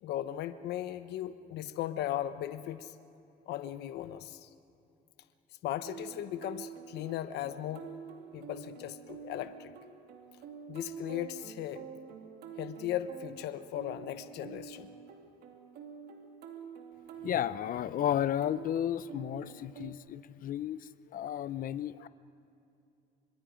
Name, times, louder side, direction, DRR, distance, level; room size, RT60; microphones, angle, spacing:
voice 1, 0.0-2.9 3.5-4.5 5.6-7.9 8.3-9.7 10.7-11.9 12.6-14.9 22.0-22.1, left 12 dB, 80° left, 11 dB, 0.9 m, -37 dB
sound 1, 5.8-19.9, right 7 dB, 75° right, 2.6 m, -48 dB
voice 2, 17.2-20.8 21.1-22.1, left 11 dB, 55° left, 16 dB, 0.7 m, -33 dB
29.5 x 25.5 x 5.2 m, 2.7 s
cardioid pair, 110°, 17 cm